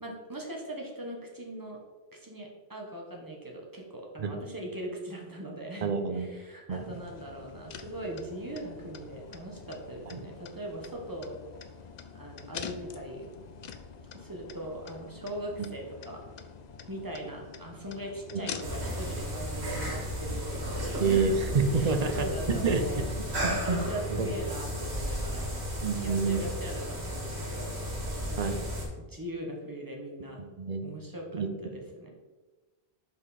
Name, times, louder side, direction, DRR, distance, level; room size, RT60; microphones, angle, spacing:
voice 1, 0.0-1.8 2.1-11.4 12.1-13.3 14.1-16.2 16.9-20.8 21.1-21.3 21.7-25.5 26.0-27.7 28.2-28.6 29.0-30.4 30.8-31.3 31.6-32.1, right 1 dB, 20° right, -1 dB, 1.1 m, -40 dB
voice 2, 5.8-6.3 6.7-6.8 10.1-10.2 15.6-15.7 18.3-18.4 21.0-23.0 23.4-23.8 24.1-24.3 25.8-26.5 28.4-28.6 30.4-30.9 31.3-31.5, right 4 dB, 45° right, 7 dB, 0.6 m, -28 dB
sound 1, 6.7-19.1, left 6 dB, 55° left, 0.5 m, -45 dB
sound 2, 18.6-28.8, equal, 75° right, 2.0 m, -34 dB
5.7 x 5.0 x 4.1 m, 1.3 s
omnidirectional pair, 1.1 m